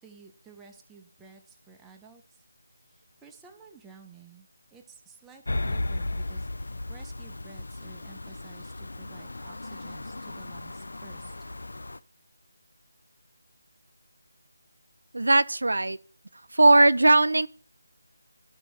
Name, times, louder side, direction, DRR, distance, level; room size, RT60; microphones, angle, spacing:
voice 1, 0.0-2.4 2.8-11.3, right 5 dB, 5° right, 0.4 m, -53 dB
sound 1, 5.5-12.0, left 2 dB, 65° left, 0.4 m, -35 dB
voice 2, 15.1-16.0 16.5-17.5, right 2 dB, 85° right, 0.5 m, -19 dB
13.5 x 4.4 x 3.0 m
figure-of-eight pair, 180°, 0 cm